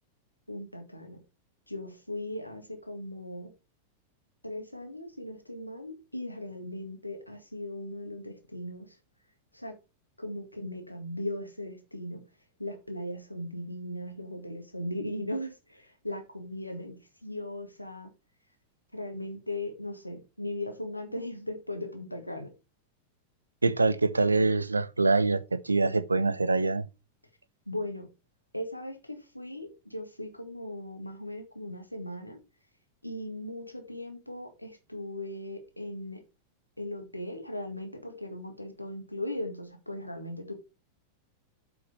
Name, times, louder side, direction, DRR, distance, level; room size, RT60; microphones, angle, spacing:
voice 1, 0.5-1.2 1.7-3.5 4.4-9.0 9.5-9.8 10.2-12.2 12.6-18.1 18.9-22.5 27.7-28.1 28.5-32.4 33.0-36.2 36.8-40.5, left 1 dB, 85° left, 1.8 m, -38 dB
voice 2, 23.6-26.9, right 3 dB, 80° right, 0.7 m, -25 dB
7.9 x 6.0 x 4.6 m
figure-of-eight pair, 90°, 0 cm